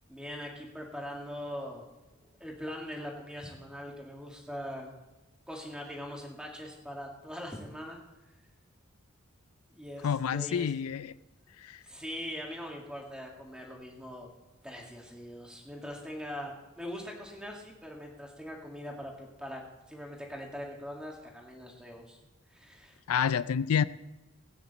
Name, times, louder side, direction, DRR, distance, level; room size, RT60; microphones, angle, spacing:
voice 1, 0.1-1.9 2.4-4.9 5.5-8.0 9.7-10.7 11.8-14.3 14.6-19.6 19.9-22.2 22.5-23.0, equal, 5° right, 2.0 m, -41 dB
voice 2, 10.0-11.2 11.6-11.8 23.1-23.8, left 7 dB, 90° left, 0.4 m, -28 dB
18.5 x 9.2 x 4.2 m
head